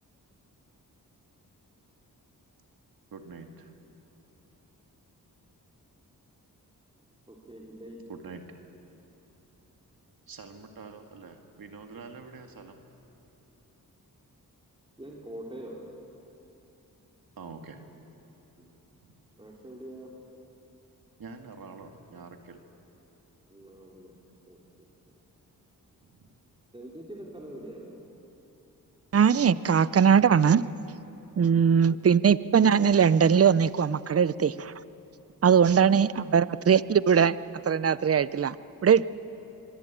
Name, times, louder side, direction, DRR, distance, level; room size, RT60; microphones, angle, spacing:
voice 1, 3.1-3.7 8.1-8.6 10.3-12.8 17.4-17.8 21.2-22.6 26.1-26.3, right 4 dB, 80° right, 5 dB, 1.9 m, -45 dB
voice 2, 7.3-8.0 15.0-15.9 18.6-18.9 19.3-20.1 23.4-24.1 24.5-25.2 26.7-28.1 31.7-32.0, right 1 dB, 15° right, -2 dB, 3.3 m, -44 dB
voice 3, 29.1-30.6 31.4-34.7 35.4-37.4 37.6-38.6 38.8-39.1, right 7 dB, 40° right, 17 dB, 0.6 m, -21 dB
23.5 x 23.0 x 8.9 m, 3.0 s
cardioid pair, 75°, 35 cm